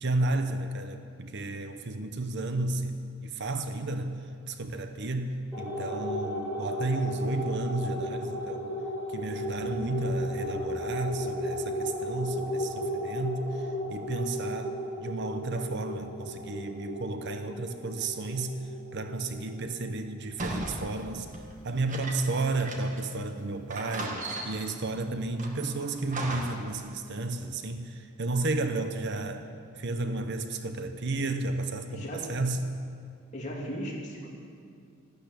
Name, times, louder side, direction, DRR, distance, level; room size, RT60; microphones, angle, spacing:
voice 1, 0.0-4.2 4.5-8.7 9.1-18.6 18.9-21.3 21.6-29.5 29.8-32.6, right 2 dB, 50° right, 8 dB, 0.8 m, -32 dB
sound 1, 5.5-20.3, equal, 5° right, 5.2 m, -35 dB
sound 2, 20.4-23.1 23.4-23.5 23.7-24.8 25.4-26.7, right 2 dB, 35° right, 1.6 m, -38 dB
voice 2, 31.9-32.3 33.3-34.3, equal, 35° left, -3 dB, 2.9 m, -37 dB
13.0 x 12.0 x 8.3 m, 2.3 s
head